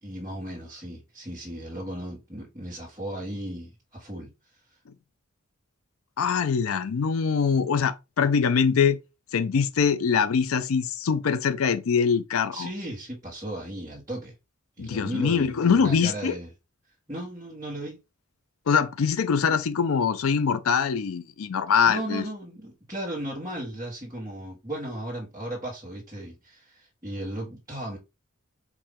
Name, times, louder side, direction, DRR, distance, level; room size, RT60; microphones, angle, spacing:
voice 1, 0.0-4.3 12.5-14.3 14.8-16.5 17.1-18.0 21.9-28.0, right 1 dB, 15° right, 1.5 m, -36 dB
voice 2, 6.2-9.0 9.3-12.7 14.8-16.3 18.7-22.2, left 6 dB, 85° left, 0.5 m, -23 dB
4.7 x 2.7 x 3.6 m
head